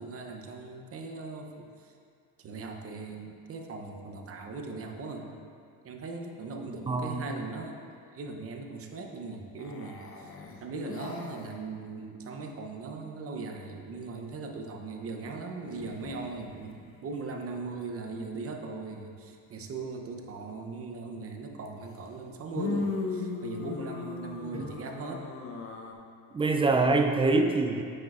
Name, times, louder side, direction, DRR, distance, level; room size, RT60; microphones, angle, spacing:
voice 1, 0.0-1.9 2.4-5.4 5.8-10.3 10.6-25.3, right 3 dB, 40° right, 3 dB, 0.7 m, -39 dB
voice 2, 6.9-7.2 24.5-24.7 26.3-27.8, right 3 dB, 15° right, 4 dB, 0.4 m, -24 dB
sound 1, 9.6-11.6 15.7-16.6 21.7-21.8 22.6-25.9, left 4 dB, 40° left, 0.6 m, -37 dB
8.7 x 6.5 x 2.4 m, 2.3 s
cardioid pair, 120°, 35 cm